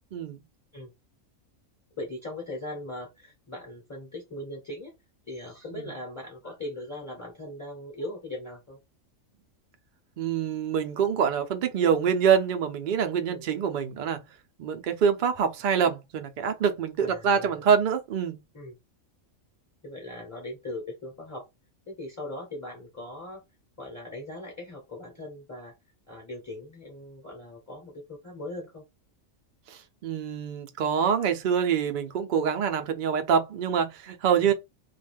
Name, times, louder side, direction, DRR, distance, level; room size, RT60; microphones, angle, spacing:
voice 1, 0.1-0.4 5.7-5.9 10.2-14.2 14.6-18.4 29.7-34.5, right 7 dB, 70° right, 0.4 m, -25 dB
voice 2, 2.0-4.9 5.3-8.8 13.2-13.5 17.0-17.6 18.5-18.8 19.8-21.5 21.9-23.4 23.8-25.8 26.1-28.8 34.4-34.5, left 1 dB, 15° left, 0.6 m, -39 dB
2.4 x 2.2 x 3.3 m
omnidirectional pair, 1.4 m